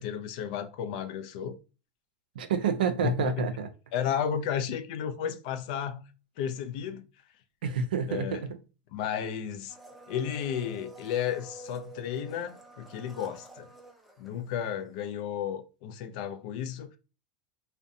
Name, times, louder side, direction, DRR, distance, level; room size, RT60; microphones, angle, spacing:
voice 1, 0.0-1.6 3.0-3.4 3.9-6.0 6.4-7.0 8.1-8.4 8.9-9.8 10.1-13.7 14.2-17.0, left 9 dB, 65° left, 0.4 m, -33 dB
voice 2, 2.3-3.7 7.6-8.6, right 6 dB, 90° right, 0.5 m, -29 dB
Domestic sounds home sounds, 9.7-15.0 15.2-15.3, right 2 dB, ahead, 0.5 m, -49 dB
2.5 x 2.1 x 2.5 m
supercardioid pair, 115°, 5 cm